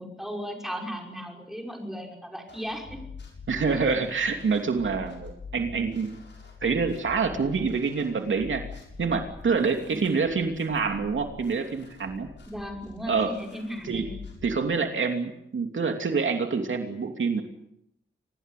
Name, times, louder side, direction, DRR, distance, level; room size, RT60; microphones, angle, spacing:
voice 1, 0.0-3.0 9.9-10.0 12.5-14.1, equal, ahead, 2 dB, 5.8 m, -36 dB
sound 1, 2.5-14.6, left 5 dB, 60° left, 7.2 m, -45 dB
voice 2, 3.5-6.2 6.6-8.6 9.0-12.3 13.1-13.3 13.8-14.1 14.4-17.4, right 5 dB, 70° right, 4 dB, 2.9 m, -26 dB
26.0 x 20.0 x 8.4 m, 0.79 s
wide cardioid pair, 140°, 20 cm